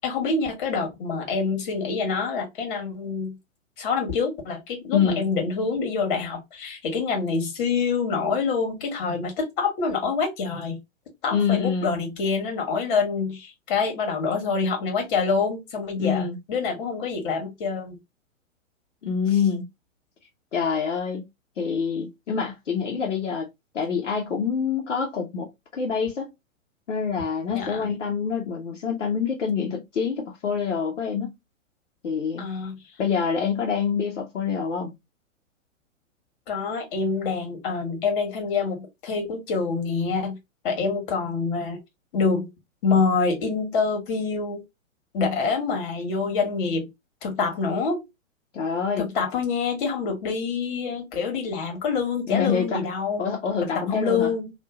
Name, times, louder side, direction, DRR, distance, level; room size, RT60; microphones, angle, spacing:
voice 1, 0.0-3.4 3.8-10.8 11.2-18.0 27.5-27.9 32.4-32.8 36.5-40.4 40.6-41.8 42.1-42.5 42.8-44.6 45.1-46.9 47.2-48.0 49.0-53.3 53.6-54.5, left 5 dB, 40° left, 1.4 m, -26 dB
voice 2, 4.9-5.3 11.3-11.9 16.0-16.4 19.0-19.6 20.5-21.3 21.6-23.5 23.7-25.5 25.7-26.3 26.9-31.3 32.0-32.4 33.0-34.9 48.5-49.1 52.3-52.8 53.2-54.3, left 6 dB, 60° left, 1.0 m, -26 dB
2.7 x 2.7 x 3.5 m
figure-of-eight pair, 120°, 40 cm